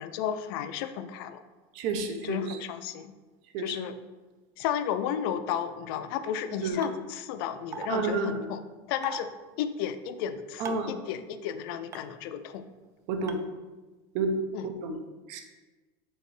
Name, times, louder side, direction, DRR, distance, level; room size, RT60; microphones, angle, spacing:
voice 1, 0.0-1.4 2.2-3.1 3.6-4.0 4.6-8.6 8.9-9.3 9.6-12.6 14.5-14.7, left 9 dB, 70° left, 10 dB, 0.5 m, -33 dB
voice 2, 1.7-2.6 3.5-3.8 6.6-6.8 7.9-8.4 10.6-10.9 13.1-13.4 14.1-14.4 14.6-15.0 15.3-15.4, right 3 dB, 60° right, 5 dB, 0.8 m, -30 dB
sound 1, 6.8-6.9 7.7-7.9 9.0-9.2 10.7-10.9 11.9-12.0 13.3-13.4, right 6 dB, 25° right, 0.4 m, -37 dB
4.6 x 4.4 x 4.9 m, 1.2 s
supercardioid pair, 145°, 13 cm